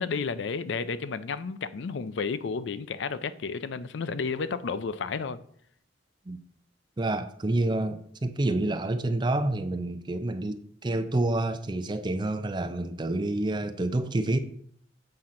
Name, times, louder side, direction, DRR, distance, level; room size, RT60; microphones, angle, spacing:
voice 1, 0.0-5.4, left 5 dB, 75° left, 0.4 m, -32 dB
voice 2, 7.0-14.4, right 2 dB, 25° right, 0.5 m, -28 dB
7.7 x 3.8 x 5.8 m
head